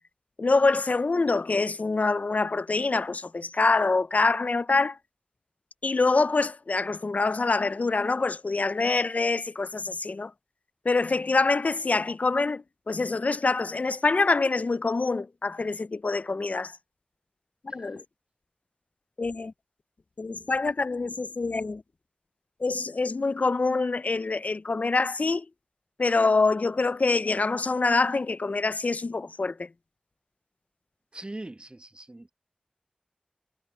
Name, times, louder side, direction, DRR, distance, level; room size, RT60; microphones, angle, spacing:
voice 1, 0.4-5.0 5.8-10.3 10.9-16.7 17.6-18.0 19.2-19.5 20.2-21.8 22.6-25.5 26.0-29.7, left 3 dB, 75° left, 0.4 m, -25 dB
voice 2, 31.1-32.3, right 2 dB, 45° right, 1.0 m, -41 dB
wide cardioid pair, 40°, 3 cm